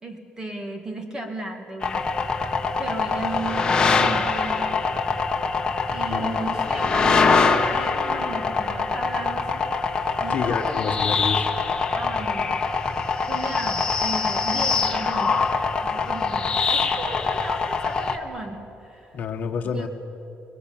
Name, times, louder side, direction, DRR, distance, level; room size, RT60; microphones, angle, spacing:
voice 1, 0.0-2.2 2.8-4.8 5.9-9.7 10.2-10.9 11.9-12.6 12.9-15.6 15.8-19.2 19.6-19.9, right 2 dB, 20° right, 5 dB, 2.3 m, -35 dB
sound 1, 1.8-18.2, left 4 dB, 20° left, 1.6 m, -24 dB
sound 2, 1.9-16.3, left 1 dB, 80° right, 6.0 m, -44 dB
voice 2, 6.1-6.5 10.3-11.5 19.1-19.9, left 6 dB, 50° left, 5 dB, 1.4 m, -28 dB
26.0 x 21.5 x 8.8 m, 2.8 s
cardioid pair, 160°, 4 cm